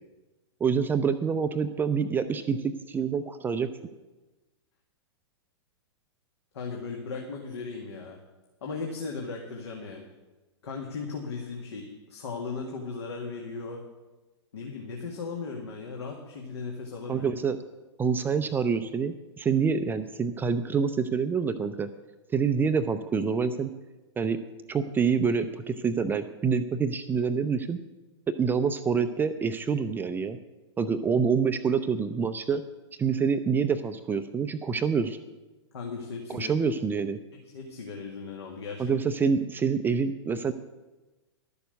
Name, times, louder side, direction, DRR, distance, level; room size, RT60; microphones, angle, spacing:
voice 1, 0.6-3.7 17.1-17.6 18.0-21.9 22.3-23.7 24.2-24.4 24.7-27.8 28.4-30.4 30.8-32.6 33.0-35.2 36.3-37.2 38.8-40.5, right 6 dB, 15° right, 9 dB, 0.5 m, -26 dB
voice 2, 6.5-8.2 8.6-10.0 10.6-13.8 14.5-17.3 35.7-36.5 37.5-38.8, left 4 dB, 65° left, 1 dB, 2.0 m, -37 dB
12.0 x 6.9 x 8.1 m, 1.1 s
hypercardioid pair, 115°, 15 cm